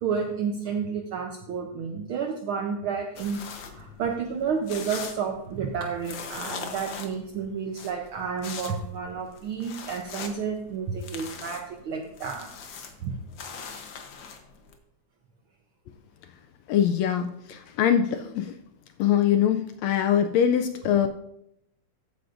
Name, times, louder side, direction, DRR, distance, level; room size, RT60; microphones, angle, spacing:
voice 1, 0.0-12.5 13.0-13.1, right 6 dB, 80° right, 3 dB, 1.2 m, -31 dB
sound 1, 3.2-14.8, left 5 dB, 60° left, 1.2 m, -42 dB
voice 2, 16.7-18.6 19.0-21.1, left 9 dB, 80° left, 8 dB, 1.6 m, -23 dB
14.0 x 9.4 x 2.6 m, 0.80 s
omnidirectional pair, 3.3 m